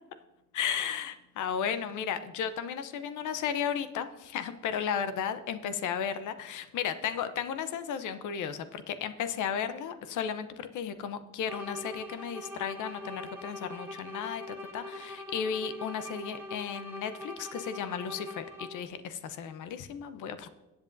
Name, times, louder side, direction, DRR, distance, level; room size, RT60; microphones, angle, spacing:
voice 1, 0.5-20.5, left 8 dB, 80° left, 11 dB, 0.8 m, -34 dB
sound 1, 11.4-19.0, left 1 dB, 5° right, 1.7 m, -42 dB
17.5 x 8.1 x 2.6 m, 1.1 s
cardioid pair, 90°, 30 cm